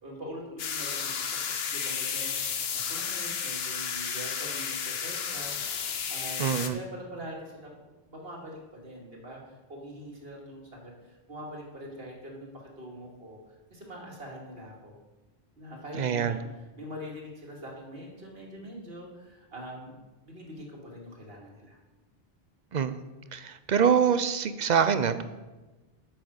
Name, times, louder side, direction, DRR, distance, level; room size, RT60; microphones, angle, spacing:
voice 1, 0.0-2.4 2.7-5.5 6.1-13.4 13.7-15.0 15.6-16.4 16.8-20.0 20.2-21.8, equal, 65° right, -1 dB, 2.5 m, -43 dB
sound 1, 0.6-6.7, left 6 dB, 70° left, 1.1 m, -32 dB
voice 2, 6.4-6.8 16.0-16.4 22.7-23.0 23.3-25.2, right 7 dB, 50° right, 12 dB, 0.6 m, -25 dB
8.8 x 7.7 x 6.4 m, 1.2 s
omnidirectional pair, 1.1 m